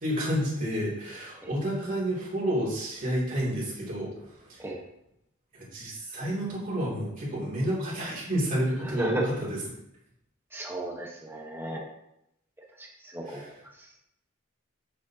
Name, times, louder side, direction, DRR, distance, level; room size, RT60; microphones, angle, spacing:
voice 1, 0.0-4.7 5.5-9.6 13.2-13.5, equal, 40° right, -6 dB, 2.7 m, -30 dB
voice 2, 10.5-11.8 13.1-13.5, right 1 dB, 10° right, -2 dB, 1.1 m, -33 dB
8.2 x 6.7 x 2.8 m, 0.81 s
head